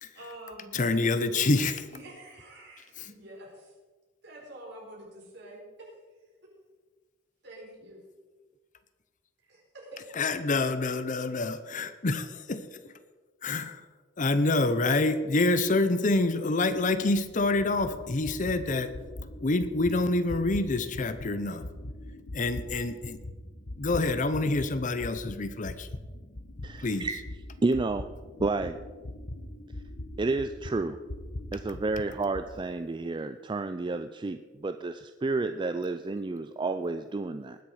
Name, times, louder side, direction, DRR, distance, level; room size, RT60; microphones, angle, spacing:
voice 1, 0.1-0.8 1.1-1.4 1.9-3.7 4.2-6.0 7.4-8.0 9.4-10.0, right 1 dB, 65° right, -2 dB, 4.6 m, -47 dB
voice 2, 0.7-1.8 3.0-3.1 10.1-12.9 13.4-13.9 14.2-19.0 19.4-21.7 22.3-23.2 23.8-25.9 26.8-27.1, left 2 dB, 45° left, 11 dB, 0.7 m, -27 dB
sound 1, 16.7-24.7 25.0-32.5, left 1 dB, 65° left, 1.1 m, -41 dB
voice 3, 26.6-27.1 27.6-28.1 28.4-28.8 30.2-31.0 31.5-37.6, right 3 dB, 25° right, 9 dB, 0.4 m, -30 dB
20.0 x 6.9 x 4.9 m, 1.3 s
head